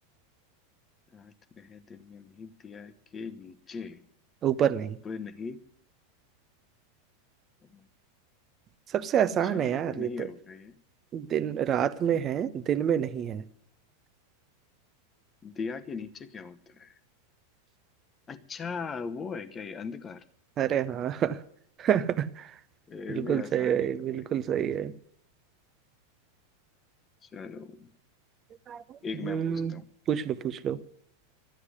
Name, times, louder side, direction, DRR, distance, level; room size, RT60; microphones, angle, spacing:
voice 1, 1.1-4.1 5.0-5.6 7.6-7.8 9.4-10.8 12.1-12.2 15.4-17.0 18.3-20.2 22.9-24.3 27.2-27.9 29.0-29.9, left 5 dB, 20° left, 13 dB, 0.9 m, -39 dB
voice 2, 4.4-5.0 8.9-10.3 11.1-13.4 20.6-21.4 21.8-22.5 23.1-24.9 28.7-28.8 29.2-29.7 30.1-30.8, right 9 dB, 30° right, 15 dB, 0.7 m, -27 dB
13.0 x 9.6 x 9.6 m, 0.65 s
figure-of-eight pair, 90°, 0 cm